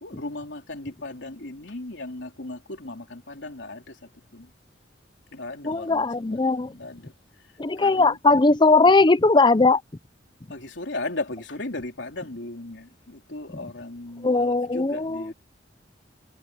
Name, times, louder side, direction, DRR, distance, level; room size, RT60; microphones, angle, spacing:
voice 1, 0.0-4.5 5.3-7.1 7.8-8.2 10.5-15.3, left 2 dB, 90° left, 3.3 m, -36 dB
voice 2, 5.7-6.7 7.6-9.8 14.2-15.3, left 3 dB, 25° left, 0.6 m, -19 dB
head